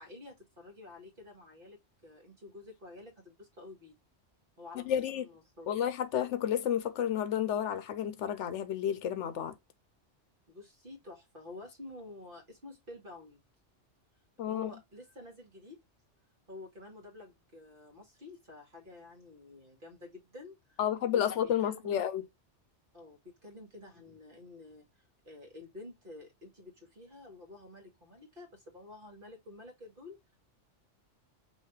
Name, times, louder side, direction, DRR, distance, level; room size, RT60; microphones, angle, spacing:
voice 1, 0.0-4.0 4.6-5.7 10.5-13.4 14.5-15.8 16.5-20.8 21.1-22.1 22.9-30.2, left 2 dB, 45° right, 1.9 m, -50 dB
voice 2, 4.7-5.2 5.7-9.6 14.4-14.7 20.8-22.3, left 9 dB, 75° left, 1.0 m, -31 dB
5.5 x 3.0 x 3.2 m
omnidirectional pair, 1.2 m